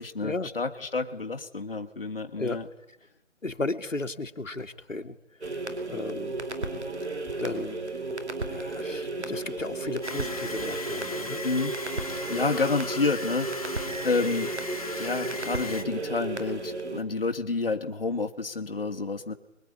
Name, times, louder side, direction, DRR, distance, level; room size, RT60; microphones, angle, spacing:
voice 1, 0.0-2.6 11.4-11.7 12.1-13.5 14.0-14.5 15.0-19.3, left 3 dB, 45° left, 4 dB, 1.9 m, -29 dB
sound 1, 0.8-0.9 2.5-2.7 3.5-3.7 4.6-4.9 5.4-5.6 6.4-6.8 7.2-7.7 8.5-8.9 9.6-10.0 10.6-10.8, left 1 dB, 5° right, 2.9 m, -52 dB
voice 2, 3.4-5.1 5.9-6.7 7.4-7.8 8.5-11.4 14.7-14.8, left 2 dB, 80° left, 5 dB, 2.4 m, -34 dB
sound 2, 5.4-17.0, right 2 dB, 60° right, 4.7 m, -34 dB
sound 3, 10.0-15.8, left 2 dB, 30° left, 1.4 m, -37 dB
26.5 x 22.5 x 10.0 m, 0.88 s
figure-of-eight pair, 175°, 38 cm